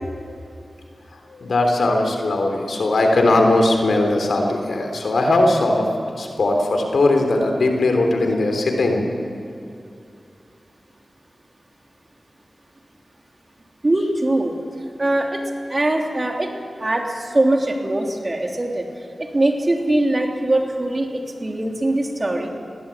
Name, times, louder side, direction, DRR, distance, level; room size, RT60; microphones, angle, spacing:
voice 1, 1.4-5.9 6.2-9.1, left 2 dB, 85° left, 3 dB, 3.3 m, -19 dB
voice 2, 13.8-14.5 15.0-15.4 15.7-16.5 16.8-18.8 19.3-22.5, right 1 dB, 40° right, 2 dB, 3.2 m, -21 dB
20.5 x 15.5 x 8.6 m, 2.5 s
cardioid pair, 40°, 0 cm